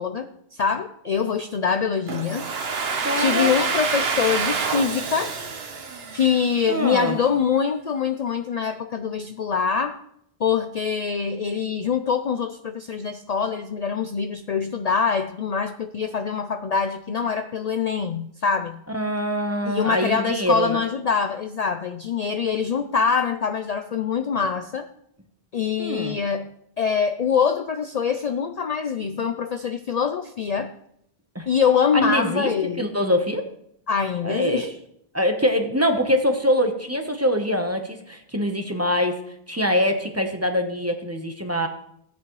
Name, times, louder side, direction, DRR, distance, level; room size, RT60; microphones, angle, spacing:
voice 1, 0.0-2.5 3.1-5.3 6.1-10.0 10.4-18.8 19.6-24.9 25.5-26.5 26.8-30.7 31.5-32.9 33.9-34.8, left 6 dB, 50° left, 9 dB, 0.5 m, -24 dB
Domestic sounds home sounds, 2.1-6.8, right 5 dB, 75° right, 1.3 m, -27 dB
voice 2, 3.0-3.5 6.7-7.2 18.9-20.8 25.8-26.2 31.3-31.5 32.0-33.5 34.2-34.7 35.1-39.2 39.5-41.7, equal, 15° right, 4 dB, 0.9 m, -24 dB
16.0 x 8.4 x 3.1 m, 0.72 s
omnidirectional pair, 1.0 m